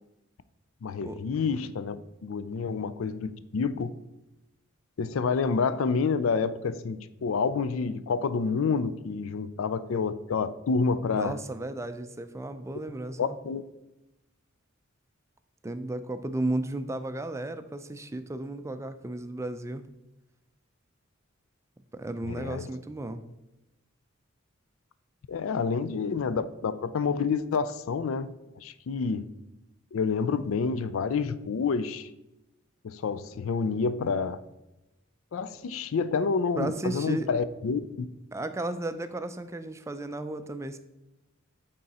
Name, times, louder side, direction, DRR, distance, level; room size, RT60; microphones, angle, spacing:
voice 1, 0.8-3.9 5.0-11.3 13.2-13.6 22.2-22.7 25.3-29.3 29.9-32.1 32.8-34.4 35.3-38.1, left 5 dB, 75° left, 14 dB, 0.4 m, -28 dB
voice 2, 11.2-13.4 15.6-19.8 21.9-23.2 36.6-37.3 38.3-40.8, right 2 dB, 15° right, 10 dB, 0.4 m, -34 dB
8.7 x 3.8 x 4.1 m, 0.96 s
head